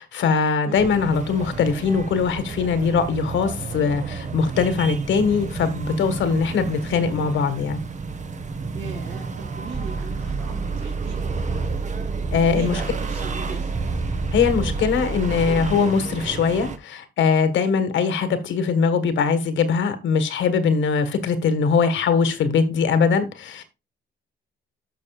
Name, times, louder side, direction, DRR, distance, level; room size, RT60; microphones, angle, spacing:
voice 1, 0.0-7.8 12.3-12.8 14.3-23.6, left 5 dB, 75° left, 1.6 m, -21 dB
sound 1, 0.8-16.8, right 4 dB, 40° right, 1.2 m, -32 dB
voice 2, 8.7-11.2 12.5-13.8, right 5 dB, 75° right, 2.2 m, -38 dB
sound 2, 9.7-15.7, right 4 dB, 15° right, 1.0 m, -28 dB
12.0 x 6.2 x 2.4 m
cardioid pair, 90°, 20 cm